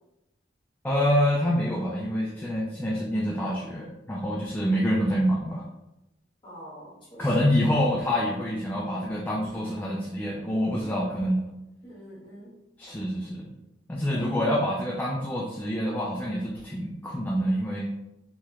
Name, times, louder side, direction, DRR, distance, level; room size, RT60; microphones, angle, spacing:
voice 1, 0.8-5.6 7.2-11.5 12.8-13.5 13.9-17.9, equal, 10° left, -4 dB, 0.3 m, -26 dB
voice 2, 6.4-7.3 11.8-12.6 14.1-14.4, equal, 25° left, -7 dB, 1.4 m, -45 dB
3.1 x 2.9 x 2.3 m, 0.93 s
head